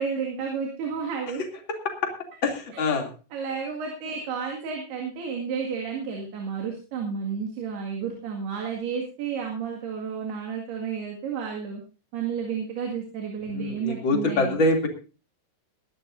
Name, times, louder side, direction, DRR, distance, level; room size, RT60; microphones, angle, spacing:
voice 1, 0.0-1.4 2.7-2.9 3.3-11.8 12.1-14.6, right 6 dB, 75° right, 0 dB, 4.0 m, -31 dB
voice 2, 2.4-3.1 13.5-14.9, left 2 dB, 35° left, 2 dB, 2.9 m, -24 dB
21.5 x 12.5 x 2.6 m, 0.33 s
omnidirectional pair, 4.8 m